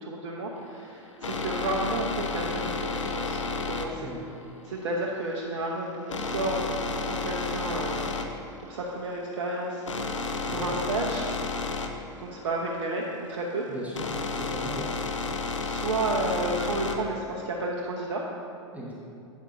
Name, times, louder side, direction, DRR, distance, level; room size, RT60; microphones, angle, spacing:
voice 1, 0.0-4.1 4.7-8.3 8.6-10.1 10.5-11.3 12.2-13.7 15.6-18.2, right 2 dB, 60° right, -2 dB, 0.9 m, -32 dB
sound 1, 0.6-17.2, left 4 dB, 75° left, 0.7 m, -32 dB
voice 2, 13.7-15.0 18.7-18.9, equal, 10° right, -5 dB, 1.2 m, -38 dB
11.0 x 8.3 x 2.6 m, 2.5 s
figure-of-eight pair, 90°, 16 cm